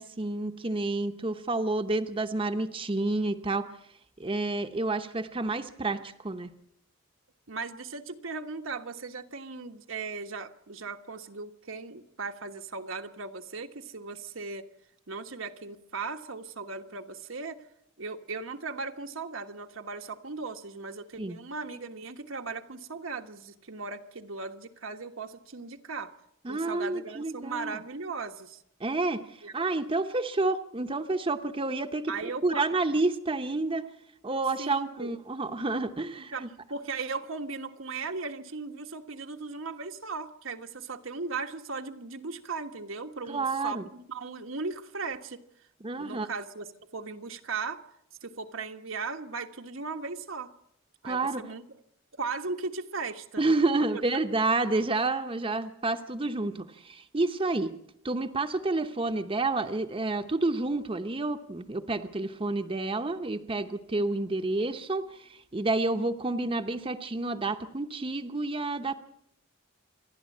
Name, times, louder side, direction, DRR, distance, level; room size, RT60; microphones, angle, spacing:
voice 1, 0.0-3.7 4.2-6.5 21.2-21.4 26.4-27.8 28.8-33.9 34.2-36.5 43.3-43.8 45.8-46.3 51.0-51.4 53.4-57.7 58.0-68.9, right 2 dB, 25° right, 7 dB, 0.9 m, -29 dB
voice 2, 7.5-14.7 15.1-17.6 18.0-26.1 26.5-28.6 29.4-29.5 32.1-32.6 34.6-35.2 36.1-45.4 45.9-46.7 46.9-47.8 48.2-50.5 51.0-51.6 52.1-53.4 53.9-54.0, right 4 dB, 80° right, 5 dB, 1.4 m, -37 dB
27.5 x 11.5 x 8.5 m, 0.75 s
head